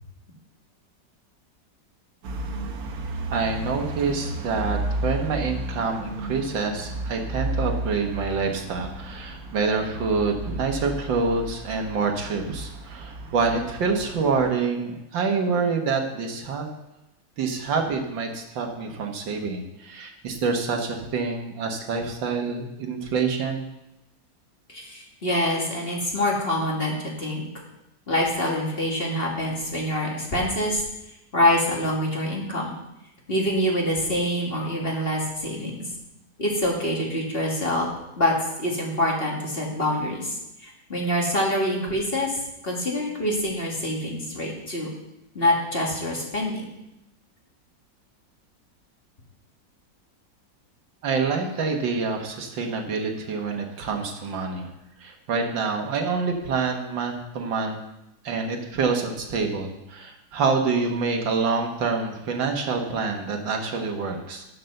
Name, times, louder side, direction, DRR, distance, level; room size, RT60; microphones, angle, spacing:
sound 1, 2.2-14.5, right 2 dB, 60° right, 1.3 m, -33 dB
voice 1, 3.3-16.7 17.4-23.7 51.0-54.7 55.0-57.8 58.2-64.4, right 4 dB, 85° right, 3 dB, 2.1 m, -26 dB
voice 2, 24.7-27.4 28.1-30.8 31.3-32.7 33.3-35.8 36.4-37.9 38.2-44.9 45.3-46.7, left 1 dB, 30° left, -2 dB, 2.1 m, -25 dB
9.1 x 6.8 x 6.6 m, 0.89 s
omnidirectional pair, 2.0 m